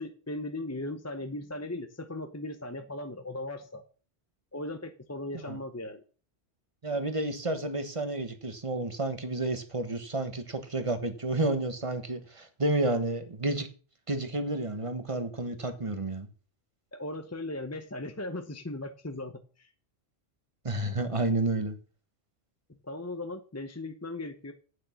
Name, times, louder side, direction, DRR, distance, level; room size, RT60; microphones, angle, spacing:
voice 1, 0.0-3.8 4.5-6.0 16.9-19.7 22.7-24.5, left 2 dB, 15° left, 0.7 m, -38 dB
voice 2, 6.8-13.7 14.1-16.3 20.6-21.8, right 2 dB, 30° right, 1.2 m, -30 dB
8.7 x 6.4 x 7.0 m
omnidirectional pair, 1.2 m